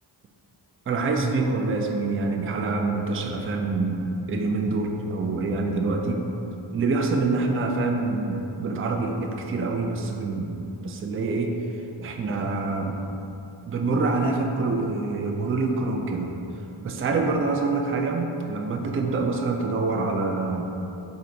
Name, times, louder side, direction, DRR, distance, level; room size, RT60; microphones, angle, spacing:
voice 1, 0.9-6.2 6.7-13.0 13.7-16.3 16.8-20.6, right 3 dB, 30° right, 2 dB, 0.4 m, -26 dB
3.9 x 2.7 x 4.4 m, 2.9 s
cardioid pair, 50°, 49 cm